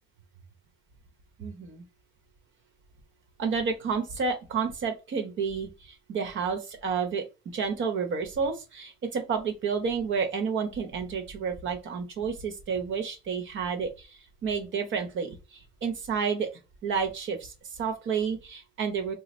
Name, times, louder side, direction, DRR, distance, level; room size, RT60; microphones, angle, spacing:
voice 1, 1.4-1.8 3.4-7.2 7.5-16.5 16.8-19.1, right 5 dB, 75° right, 1.1 m, -30 dB
3.2 x 2.2 x 4.2 m
cardioid pair, 90°, 20 cm